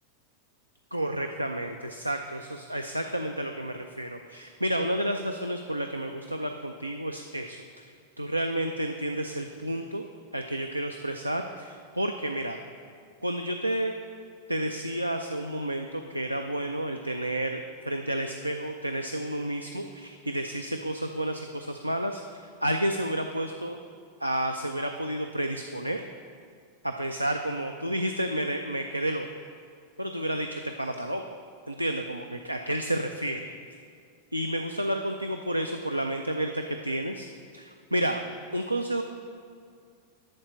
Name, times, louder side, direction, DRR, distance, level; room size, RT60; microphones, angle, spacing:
voice 1, 0.9-7.9 8.2-10.0 10.3-12.6 13.2-13.9 14.5-23.8 24.2-26.0 26.8-29.3 30.0-31.2 31.7-33.5 34.3-37.3 37.5-38.2 38.5-39.0, right 1 dB, 85° right, 5 dB, 0.4 m, -31 dB
12.0 x 4.3 x 7.0 m, 2.2 s
figure-of-eight pair, 90°, 0 cm